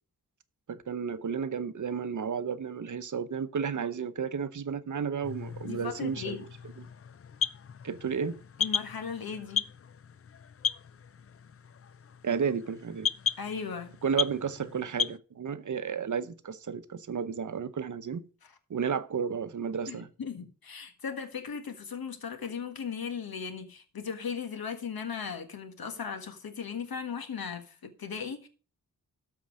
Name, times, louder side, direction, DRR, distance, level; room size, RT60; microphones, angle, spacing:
voice 1, 0.7-6.4 6.8-6.9 7.8-8.4 12.2-13.1 14.0-18.2 18.7-20.1, right 6 dB, 55° right, 0.8 m, -32 dB
sound 1, 5.2-15.2, left 7 dB, 40° left, 0.4 m, -36 dB
voice 2, 5.6-6.4 8.6-9.6 13.4-13.9 19.9-28.5, left 6 dB, 75° left, 1.6 m, -37 dB
13.0 x 4.6 x 6.3 m
wide cardioid pair, 120°, 36 cm